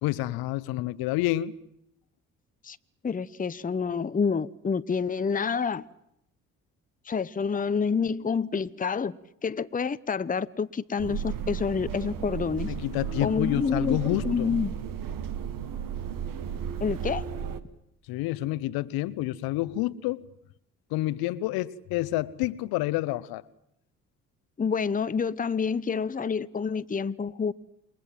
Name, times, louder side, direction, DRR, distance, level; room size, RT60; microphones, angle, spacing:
voice 1, 0.0-1.5 12.7-14.5 18.1-20.2 20.9-23.4, left 16 dB, 70° left, 1.1 m, -28 dB
voice 2, 3.0-5.9 7.1-9.2 9.4-12.7 13.2-14.8 16.8-17.2 24.6-27.5, left 5 dB, 20° left, 0.9 m, -28 dB
sound 1, 11.0-17.6, right 8 dB, 60° right, 1.8 m, -34 dB
28.5 x 22.0 x 7.6 m
hypercardioid pair, 50°, 38 cm